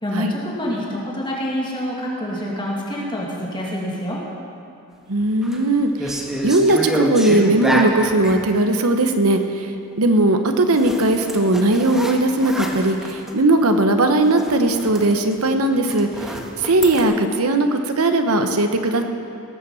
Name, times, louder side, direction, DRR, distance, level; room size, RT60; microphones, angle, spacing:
voice 1, 0.0-4.2, equal, 20° left, -4 dB, 2.3 m, -27 dB
voice 2, 5.1-9.7 10.0-16.1 16.6-19.0, right 2 dB, 75° right, 6 dB, 1.1 m, -18 dB
sound 1, 5.2-5.6 6.0-8.4 10.7-13.4 13.7-13.9 14.2-17.0, equal, ahead, 1.3 m, -28 dB
18.5 x 8.0 x 7.1 m, 2.5 s
head